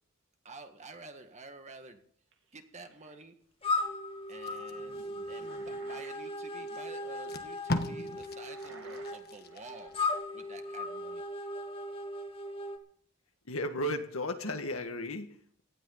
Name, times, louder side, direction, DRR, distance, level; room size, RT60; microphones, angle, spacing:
voice 1, 0.4-2.0 2.5-3.4 4.3-5.0 5.3-10.0 10.3-11.2, right 3 dB, 35° right, 6 dB, 1.8 m, -50 dB
sound 1, 2.3-3.2 5.0-6.2 6.5-6.8 8.3-10.0, right 4 dB, 65° right, 2.0 m, -55 dB
sound 2, 3.6-12.8, left 2 dB, 25° left, 1.7 m, -37 dB
Packing tape duct tape, 4.3-6.0 6.7-6.8 7.1-10.1 10.5-10.7, left 2 dB, 50° left, 1.3 m, -39 dB
voice 2, 13.5-15.6, left 1 dB, 80° left, 6 dB, 1.8 m, -35 dB
18.0 x 13.0 x 4.0 m, 0.62 s
head